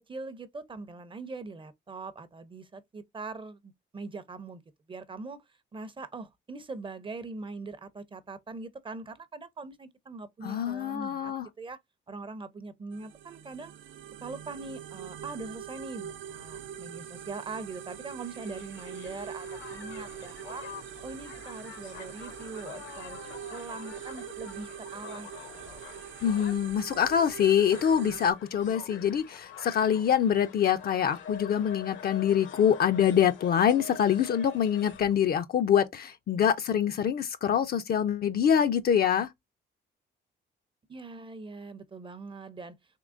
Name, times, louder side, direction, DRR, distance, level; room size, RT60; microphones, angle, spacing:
voice 1, 0.0-4.6 4.9-5.4 5.7-11.8 12.1-13.7 14.2-20.7 21.0-23.2 23.5-25.8 40.9-42.7, right 3 dB, 25° right, 0.5 m, -42 dB
voice 2, 10.4-11.5 26.2-39.3, left 8 dB, 50° left, 0.4 m, -25 dB
sound 1, 12.9-28.3, right 9 dB, 75° right, 0.4 m, -43 dB
Crowd, 17.9-35.2, left 7 dB, 75° left, 0.8 m, -46 dB
3.6 x 3.0 x 2.4 m
cardioid pair, 90°, 20 cm